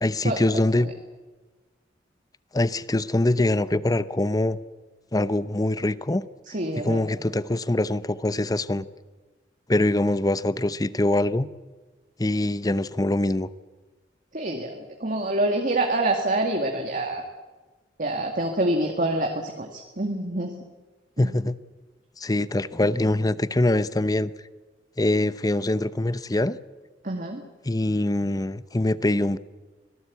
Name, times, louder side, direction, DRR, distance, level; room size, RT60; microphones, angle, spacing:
voice 1, 0.0-0.9 2.5-4.6 5.1-6.2 6.8-8.9 9.7-11.5 12.2-13.5 21.2-21.6 22.2-24.3 25.0-26.6 27.6-29.4, left 1 dB, 20° left, 15 dB, 0.7 m, -23 dB
voice 2, 6.5-7.1 14.3-17.2 18.0-20.5 21.2-21.3 27.0-27.4, right 1 dB, 45° right, 3 dB, 2.0 m, -26 dB
24.5 x 17.5 x 8.4 m, 1.3 s
head